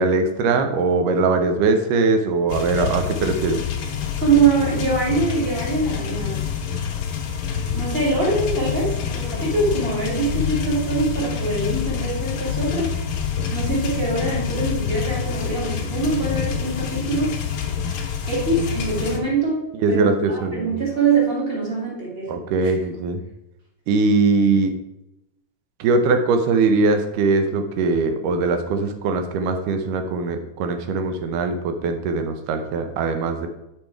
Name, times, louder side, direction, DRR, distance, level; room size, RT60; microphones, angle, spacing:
voice 1, 0.0-3.6 19.8-20.8 22.3-23.2 23.9-24.7 25.8-33.5, right 3 dB, 80° right, 7 dB, 2.3 m, -21 dB
sound 1, 2.5-19.2, left 7 dB, 75° left, 1.2 m, -27 dB
voice 2, 4.2-6.5 7.7-12.9 13.5-17.3 18.3-22.3 22.6-22.7, right 3 dB, 20° right, -4 dB, 2.1 m, -23 dB
7.4 x 5.4 x 4.6 m, 0.88 s
omnidirectional pair, 3.8 m